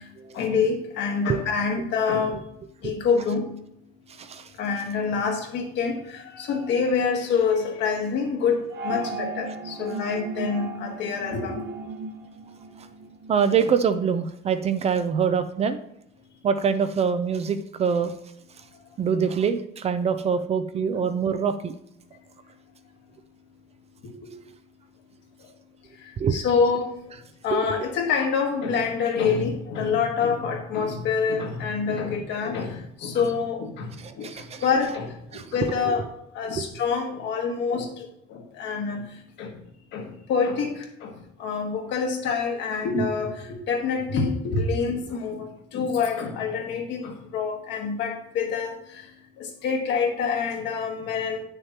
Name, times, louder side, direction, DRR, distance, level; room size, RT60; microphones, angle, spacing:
voice 1, 0.3-2.4 2.8-3.5 4.6-11.7 26.3-26.9 27.4-32.7 33.0-33.9 34.2-34.3 34.6-35.1 35.5-36.0 36.3-37.8 38.6-39.0 39.4-39.5 39.9-40.7 41.0-41.1 41.4-45.5 45.7-48.7 49.6-51.4, left 5 dB, 65° left, 2 dB, 1.6 m, -26 dB
sound 1, 8.7-13.3, right 3 dB, 60° right, 1.0 m, -35 dB
voice 2, 13.3-15.8 16.4-18.1 19.0-21.7 26.2-26.4 27.5-27.6 34.0-34.6 35.3-35.4 35.9-36.0 36.5-36.6, right 6 dB, 30° right, 10 dB, 0.5 m, -24 dB
8.7 x 6.6 x 2.9 m, 0.78 s
cardioid pair, 125°, 20 cm